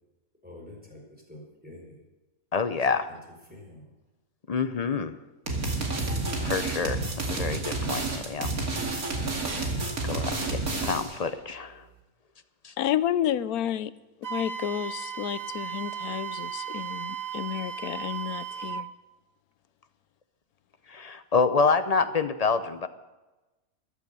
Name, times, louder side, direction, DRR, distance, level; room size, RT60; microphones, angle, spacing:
voice 1, 0.4-2.0 2.9-3.2 3.5-3.9, left 1 dB, 5° right, -1 dB, 4.5 m, -47 dB
voice 2, 2.5-3.1 4.5-5.1 6.4-7.0 7.3-8.5 10.0-11.8 12.6-12.7 20.9-22.9, left 5 dB, 45° left, 11 dB, 0.5 m, -27 dB
sound 1, 5.5-11.2, right 3 dB, 75° right, 2.8 m, -30 dB
voice 3, 12.8-13.9 14.2-18.9, left 10 dB, 90° left, 16 dB, 1.1 m, -30 dB
Wind instrument woodwind instrument, 14.2-18.9, right 8 dB, 55° right, 0.4 m, -36 dB
14.0 x 12.0 x 6.8 m, 1.1 s
omnidirectional pair, 1.5 m